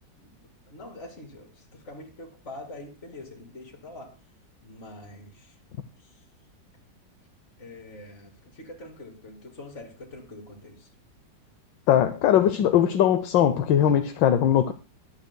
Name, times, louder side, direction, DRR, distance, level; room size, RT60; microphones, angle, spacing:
voice 1, 0.2-4.1 4.6-5.5 6.0-6.1 7.6-10.9, left 2 dB, 40° left, 2.8 m, -44 dB
voice 2, 11.9-14.7, left 10 dB, 85° left, 1.4 m, -20 dB
22.5 x 8.2 x 2.2 m
omnidirectional pair, 2.0 m